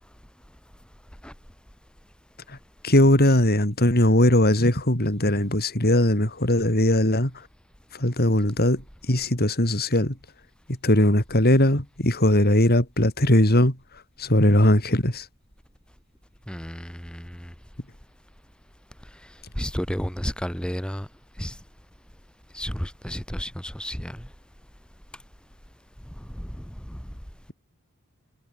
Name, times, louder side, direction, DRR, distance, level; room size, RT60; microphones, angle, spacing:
voice 1, 2.8-7.3 7.9-8.8 9.1-10.2 10.8-13.8 14.2-15.3, left 1 dB, 45° left, 5.7 m, -20 dB
voice 2, 16.5-17.5 19.5-21.1 21.4-21.6 22.5-24.2 26.4-26.5 26.9-27.0, equal, 5° left, 3.0 m, -32 dB
head